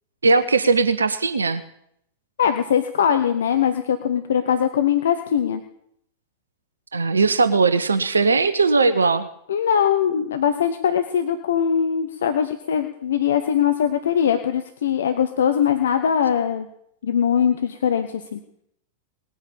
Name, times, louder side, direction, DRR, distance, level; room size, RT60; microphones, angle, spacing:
voice 1, 0.2-1.6 6.9-9.3, right 4 dB, 75° right, 12 dB, 0.8 m, -19 dB
voice 2, 2.4-5.6 9.5-16.7 17.0-18.4, left 8 dB, 65° left, 8 dB, 0.9 m, -21 dB
19.5 x 8.7 x 7.1 m, 0.73 s
figure-of-eight pair, 90°, 0 cm